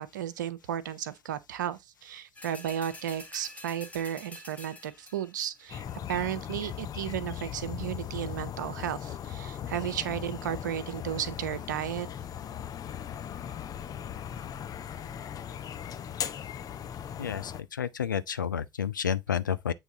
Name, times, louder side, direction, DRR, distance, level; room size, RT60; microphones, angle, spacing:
voice 1, 0.0-5.8 6.1-12.1, right 10 dB, 70° right, 0.6 m, -34 dB
sound 1, 2.4-5.4 5.9-6.0, left 2 dB, 15° left, 1.2 m, -47 dB
sound 2, 5.7-17.6, left 9 dB, 35° left, 0.6 m, -38 dB
voice 2, 17.2-19.7, left 8 dB, 80° left, 0.4 m, -30 dB
8.1 x 3.3 x 3.8 m
figure-of-eight pair, 60°, 10 cm